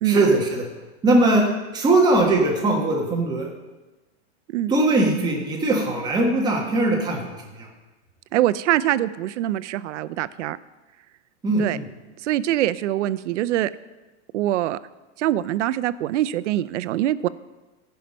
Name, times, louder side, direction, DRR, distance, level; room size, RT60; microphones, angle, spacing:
voice 1, 0.0-0.7 1.0-1.5 1.7-3.5 4.7-7.7 11.4-11.9, right 2 dB, 10° right, -1 dB, 1.3 m, -20 dB
voice 2, 8.3-10.6 11.6-11.8 12.2-13.7 14.3-14.8 15.2-17.3, right 13 dB, 85° right, 16 dB, 0.6 m, -23 dB
14.5 x 5.7 x 5.3 m, 1.2 s
supercardioid pair, 170°, 35 cm